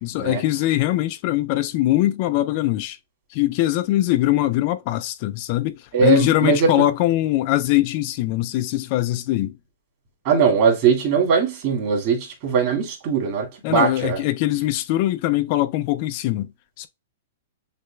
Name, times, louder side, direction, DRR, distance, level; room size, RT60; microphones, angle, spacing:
voice 1, 0.0-3.0 3.3-9.5 13.6-16.5 16.8-16.9, left 15 dB, 40° left, 0.3 m, -22 dB
voice 2, 5.9-6.7 10.2-14.2, right 6 dB, 40° right, 2.1 m, -20 dB
6.6 x 2.2 x 2.2 m
hypercardioid pair, 150°, 0 cm